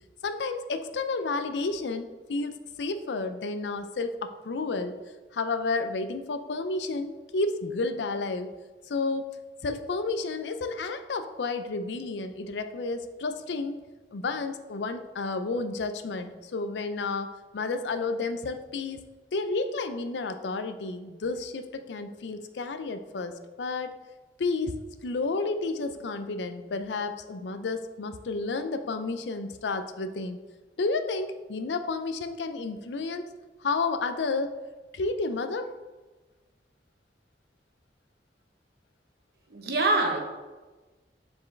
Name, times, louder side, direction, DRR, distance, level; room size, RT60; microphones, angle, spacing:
voice 1, 0.2-5.0 5.3-8.5 8.9-9.3 9.6-13.8 14.1-19.0 19.3-23.9 24.4-24.7 25.0-30.4 30.8-33.3 33.6-34.6 34.9-35.7, left 3 dB, 85° left, 9 dB, 0.5 m, -31 dB
voice 2, 39.5-40.2, right 2 dB, 60° right, 2 dB, 1.0 m, -24 dB
7.1 x 4.5 x 3.3 m, 1.2 s
head